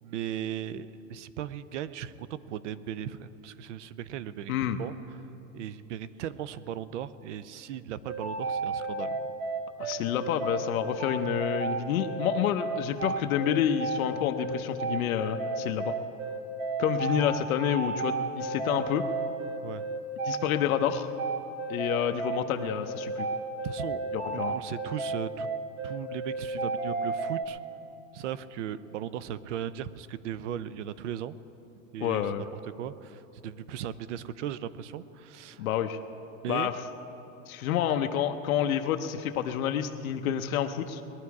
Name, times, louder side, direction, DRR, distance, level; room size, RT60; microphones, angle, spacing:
voice 1, 0.0-4.5 4.8-4.9 5.5-9.2 19.6-19.8 23.6-25.5 25.8-27.6 28.1-31.4 31.9-35.7 36.4-36.7, right 10 dB, 55° right, 16 dB, 0.6 m, -37 dB
sound 1, 8.1-27.4, right 3 dB, 15° right, 0.7 m, -32 dB
voice 2, 9.8-15.9 16.8-19.0 20.3-21.1 21.7-23.3 24.1-24.5 32.0-32.5 35.6-36.0 36.5-36.7 37.5-41.0, left 10 dB, 75° left, 6 dB, 0.9 m, -28 dB
20.5 x 11.5 x 4.8 m, 2.9 s
supercardioid pair, 175°, 42 cm